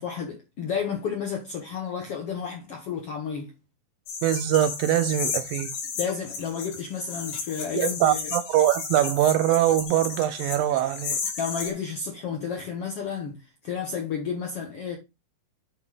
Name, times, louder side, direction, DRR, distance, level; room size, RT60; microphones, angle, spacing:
voice 1, 0.0-3.5 6.0-8.2 11.4-13.4 13.6-15.0, left 6 dB, 65° left, 1.4 m, -31 dB
sound 1, 4.1-11.7, left 5 dB, 90° left, 4.2 m, -33 dB
voice 2, 4.2-5.8 7.7-11.2, right 12 dB, 80° right, 2.2 m, -23 dB
8.8 x 3.7 x 4.8 m
omnidirectional pair, 4.3 m